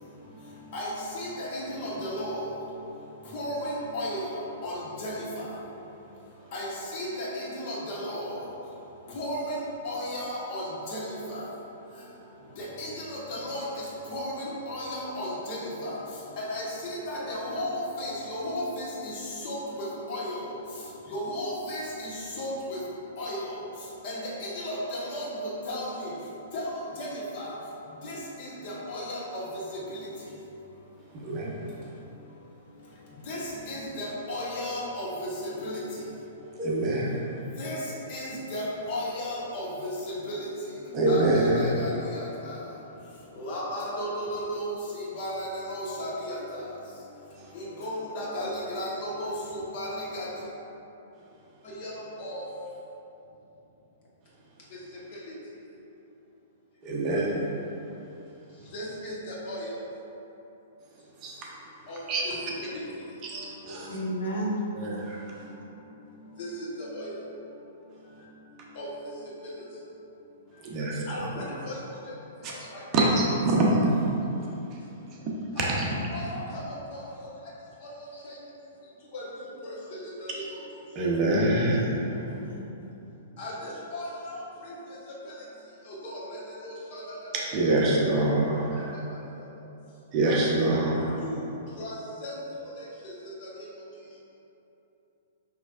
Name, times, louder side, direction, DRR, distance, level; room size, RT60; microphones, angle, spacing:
voice 1, 1.1-2.5 3.3-4.2 4.6-5.1 6.5-8.3 9.1-9.6 9.8-10.6 10.9-11.4 12.6-13.6 14.1-15.9 16.4-19.1 19.4-20.3 21.1-22.1 22.4-22.8 23.2-23.4 24.0-26.1 26.5-26.7 27.0-27.1 27.3-27.5 28.0-29.4 33.3-33.4 33.7-35.3 35.6-35.8 37.6-37.8 38.1-38.6 38.9-39.7 40.3-40.4 41.1-42.3 43.4-46.4 47.5-50.3 51.8-51.9 52.2-52.4 58.7-59.1 59.5-59.6 61.9-62.0 66.4-66.5 66.8-67.1 68.8-68.9 71.1-71.4 72.9-73.0 75.6-75.7 76.1-76.2 76.5-76.6 79.1-79.2 80.3-80.4 83.4-83.5 83.9-84.1 86.0-86.2 86.6-87.0 91.2-91.3 91.8-91.9 92.2-92.3, left 1 dB, 50° left, -7 dB, 1.2 m, -34 dB
voice 2, 31.1-31.6 36.6-37.3 40.9-41.8 56.8-57.4 61.2-61.4 62.1-62.2 63.2-63.9 64.8-65.3 70.6-71.3 72.4-72.5 72.9-73.9 75.6-75.9 81.0-82.0 87.3-88.9 90.1-91.2, right 2 dB, 35° right, -3 dB, 0.7 m, -25 dB
voice 3, 63.9-64.6 74.4-74.5 78.1-78.4 82.1-82.7, right 1 dB, 80° left, -7 dB, 1.0 m, -33 dB
5.3 x 3.1 x 2.5 m, 3.0 s
figure-of-eight pair, 110°, 0 cm